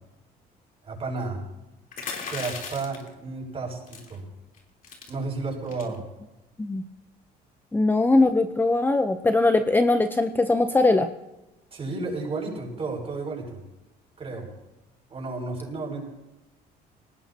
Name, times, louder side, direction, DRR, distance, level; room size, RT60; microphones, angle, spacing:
voice 1, 0.8-1.4 2.3-4.2 5.1-6.0 11.7-13.6 14.2-14.5 15.1-16.0, right 3 dB, 35° right, -1 dB, 6.5 m, -32 dB
sound 1, 1.9-3.1 3.9-4.2 4.5-4.6 4.8-5.1 5.7-6.0, left 5 dB, 55° left, 3.5 m, -36 dB
voice 2, 7.7-11.1, left 2 dB, 10° left, 7 dB, 0.7 m, -21 dB
21.5 x 18.5 x 2.9 m, 0.98 s
cardioid pair, 110°, 17 cm